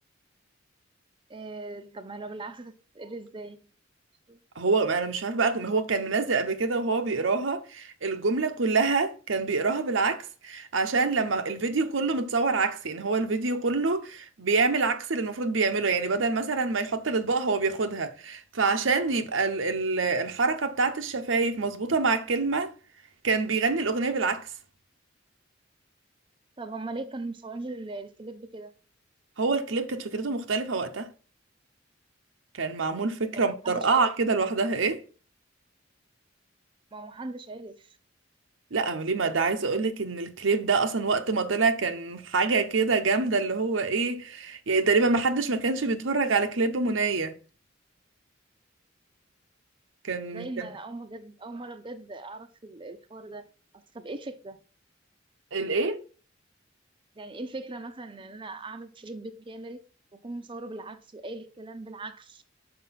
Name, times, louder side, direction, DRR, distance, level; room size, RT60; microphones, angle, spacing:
voice 1, 1.3-3.6 4.3-4.4 26.6-28.7 33.3-34.1 36.9-38.0 50.2-53.5 53.7-54.6 57.2-59.8 60.1-62.4, right 2 dB, 25° right, 0.6 m, -39 dB
voice 2, 4.6-22.7 23.2-24.5 29.4-31.1 32.6-35.0 38.7-47.3 50.0-50.7 55.5-56.0, right 4 dB, 85° right, 0.8 m, -26 dB
5.9 x 5.1 x 5.7 m
head